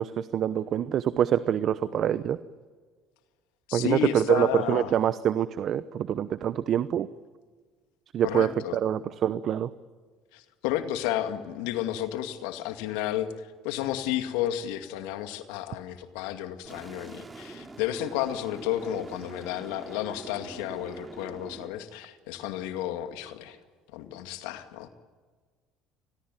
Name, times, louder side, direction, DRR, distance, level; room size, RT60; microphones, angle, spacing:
voice 1, 0.0-2.4 3.7-7.1 8.1-9.7, right 9 dB, 55° right, 15 dB, 0.9 m, -25 dB
voice 2, 3.7-4.9 8.2-8.8 10.3-23.6 23.9-24.9, left 12 dB, 80° left, 9 dB, 2.2 m, -32 dB
sound 1, 16.7-21.7, right 2 dB, 20° right, 3.5 m, -44 dB
30.0 x 21.0 x 9.2 m, 1.5 s
supercardioid pair, 80°, 0 cm